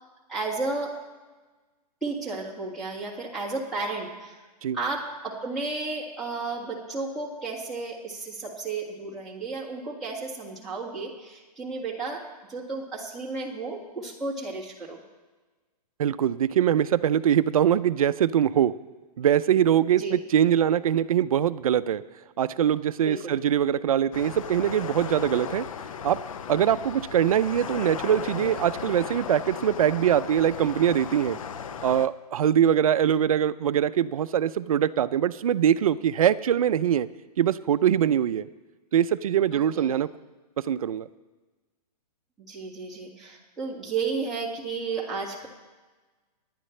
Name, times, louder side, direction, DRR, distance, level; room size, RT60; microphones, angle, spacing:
voice 1, 0.3-1.0 2.0-4.4 4.7-15.0 20.0-20.2 23.0-23.3 39.5-39.9 42.4-45.5, right 3 dB, ahead, -9 dB, 2.0 m, -33 dB
voice 2, 16.0-18.7 19.2-22.0 22.4-25.7 26.0-26.2 26.5-31.4 31.8-37.1 37.4-38.5 38.9-40.1 40.7-41.1, right 9 dB, 55° right, 13 dB, 0.6 m, -23 dB
sound 1, 24.1-32.1, left 7 dB, 55° left, 0.7 m, -36 dB
27.0 x 10.5 x 3.3 m, 1.3 s
hypercardioid pair, 170°, 21 cm